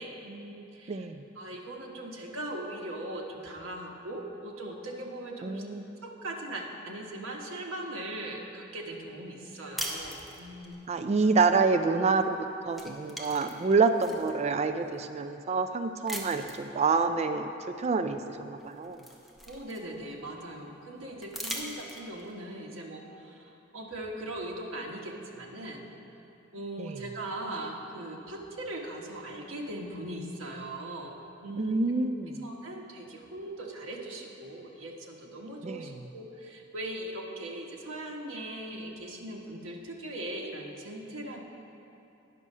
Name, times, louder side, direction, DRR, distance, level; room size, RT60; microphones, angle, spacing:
voice 1, 0.0-1.1 1.3-5.6 6.0-10.8 19.5-25.8 26.5-31.8 32.4-41.4, right 1 dB, 90° right, 0 dB, 1.1 m, -40 dB
voice 2, 0.9-1.2 5.4-5.8 10.9-12.4 12.7-17.5 17.8-19.0 26.8-27.0 31.6-32.4 35.6-35.9, right 4 dB, 35° right, 8 dB, 0.3 m, -27 dB
sound 1, 9.8-10.8 12.2-12.4 12.7-14.3 14.9-15.0 16.1-16.7 18.1-18.2 18.6-20.1 21.2-22.3, equal, ahead, 0.7 m, -40 dB
9.6 x 6.2 x 5.4 m, 2.9 s
head